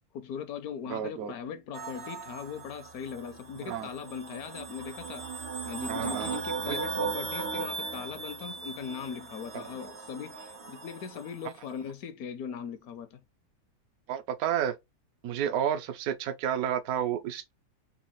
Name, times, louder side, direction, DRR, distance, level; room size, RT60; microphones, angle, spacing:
voice 1, 0.1-5.3 5.6-13.2, left 7 dB, 70° left, 1.0 m, -39 dB
voice 2, 0.9-1.3 3.6-3.9 5.9-6.4 6.7-6.8 9.5-9.6 14.1-14.7 15.2-17.5, right 9 dB, 70° right, 1.0 m, -31 dB
sound 1, 1.7-11.5, right 4 dB, 50° right, 0.4 m, -38 dB
4.0 x 2.4 x 2.9 m
omnidirectional pair, 1.7 m